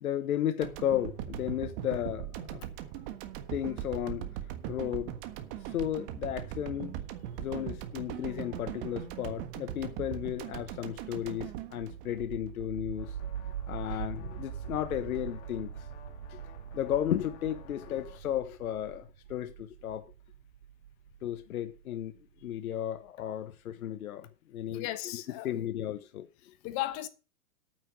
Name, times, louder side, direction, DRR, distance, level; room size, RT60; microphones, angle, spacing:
voice 1, 0.0-2.6 3.5-4.3 4.7-5.1 5.7-7.0 7.4-13.1 13.7-15.7 16.3-16.4 16.7-20.1 21.2-22.2 22.4-24.9 25.4-26.5, left 11 dB, 75° left, 1.2 m, -34 dB
sound 1, 0.6-12.8, right 11 dB, 40° right, 1.5 m, -40 dB
sound 2, 11.8-22.5, right 9 dB, 70° right, 3.1 m, -43 dB
sound 3, 13.0-18.2, left 9 dB, 50° left, 2.4 m, -53 dB
voice 2, 24.7-25.5 26.6-27.1, left 15 dB, 35° left, 1.2 m, -36 dB
9.1 x 8.3 x 6.2 m
hypercardioid pair, 145°, 43 cm